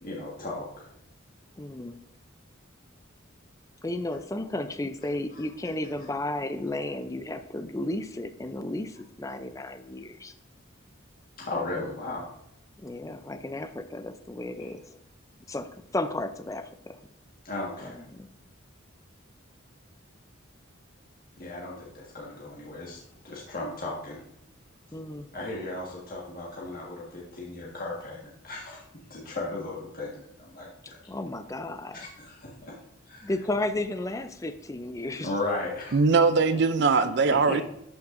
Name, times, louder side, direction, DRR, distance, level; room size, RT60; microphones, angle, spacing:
voice 1, 0.0-0.9 5.3-5.4 11.4-12.2 14.6-14.7 17.4-18.0 21.4-23.0 23.2-24.2 25.3-31.0 31.9-32.7 33.1-33.3 35.2-36.0 37.3-37.6, left 2 dB, 45° left, -4 dB, 1.6 m, -36 dB
voice 2, 1.6-2.0 3.8-10.3 12.8-14.9 15.5-17.0 17.8-18.3 24.9-25.3 31.1-32.1 33.2-35.3, left 1 dB, 15° left, 9 dB, 0.4 m, -33 dB
voice 3, 35.9-37.6, right 4 dB, 55° right, 12 dB, 0.4 m, -21 dB
13.0 x 5.7 x 2.6 m, 0.80 s
head